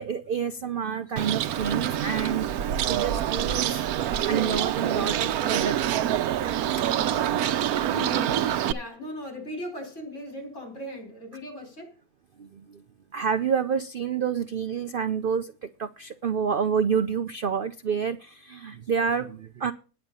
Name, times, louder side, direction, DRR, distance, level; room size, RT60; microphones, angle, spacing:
voice 1, 0.0-2.5 2.9-3.8 4.3-6.3 12.4-12.8 13.1-19.7, right 6 dB, 50° right, 0.6 m, -28 dB
Bird, 1.2-8.7, right 11 dB, 80° right, 1.2 m, -26 dB
voice 2, 7.8-11.9, left 1 dB, 50° left, 4.8 m, -38 dB
10.0 x 8.9 x 5.4 m
omnidirectional pair, 1.5 m